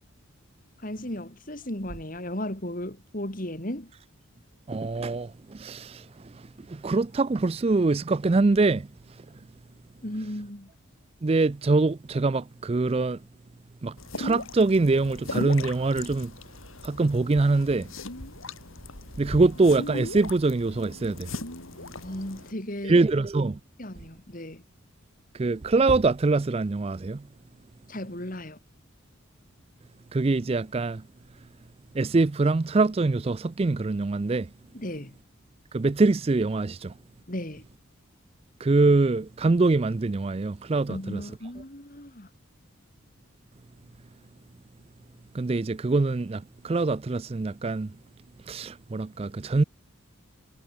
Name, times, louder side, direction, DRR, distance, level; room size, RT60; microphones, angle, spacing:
voice 1, 0.8-3.9 10.0-10.7 22.0-23.0 23.8-24.6 27.9-28.6 34.7-35.1 37.3-37.6 40.9-42.3, left 1 dB, 40° left, 3.2 m, -35 dB
voice 2, 4.7-8.9 11.2-13.2 13.8-16.3 16.8-17.9 19.2-21.3 22.8-23.6 25.3-27.2 30.1-31.0 31.9-34.5 35.7-36.9 38.6-41.3 45.3-47.9 48.5-49.6, right 3 dB, 30° right, 0.4 m, -24 dB
sound 1, 14.0-22.5, left 2 dB, 75° left, 4.8 m, -38 dB
head